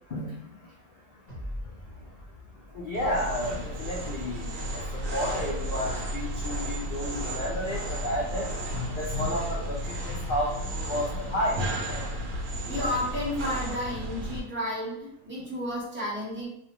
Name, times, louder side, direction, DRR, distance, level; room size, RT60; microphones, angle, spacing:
voice 1, 0.1-0.7 2.7-8.5 8.9-10.6 10.9-11.6 11.9-12.0, equal, 80° left, -3 dB, 0.4 m, -32 dB
sound 1, 1.3-4.6, left 1 dB, 40° left, 0.7 m, -43 dB
sound 2, 2.9-14.4, equal, 75° right, 1.0 m, -33 dB
voice 2, 12.7-16.5, left 1 dB, 10° right, -7 dB, 0.7 m, -32 dB
2.5 x 2.2 x 2.8 m, 0.74 s
omnidirectional pair, 1.4 m